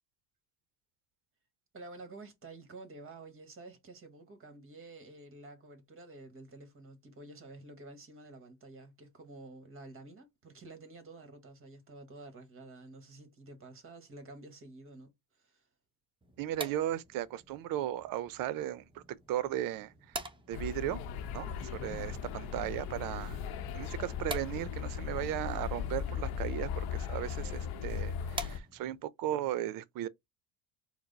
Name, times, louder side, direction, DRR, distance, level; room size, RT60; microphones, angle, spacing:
voice 1, 1.7-15.1 15.4-15.7, right 2 dB, 35° right, 1.4 m, -50 dB
sound 1, 16.2-29.1, right 2 dB, 15° right, 0.7 m, -48 dB
voice 2, 16.4-20.2 20.5-21.0 21.3-23.4 23.7-30.1, right 12 dB, 65° right, 0.6 m, -36 dB
sound 2, 20.5-28.6, left 7 dB, 75° left, 0.7 m, -37 dB
4.6 x 2.0 x 3.9 m
cardioid pair, 105°, 36 cm